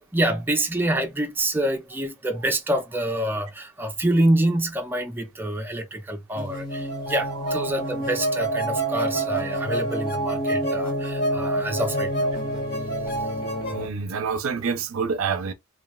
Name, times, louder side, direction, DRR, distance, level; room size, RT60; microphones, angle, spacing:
voice 1, 0.1-12.3 12.8-13.3, right 1 dB, 10° right, 0.5 m, -26 dB
sound 1, 6.4-13.9, right 1 dB, 50° left, 1.4 m, -27 dB
voice 2, 13.7-15.5, right 5 dB, 80° right, 0.5 m, -27 dB
3.1 x 2.3 x 2.3 m
head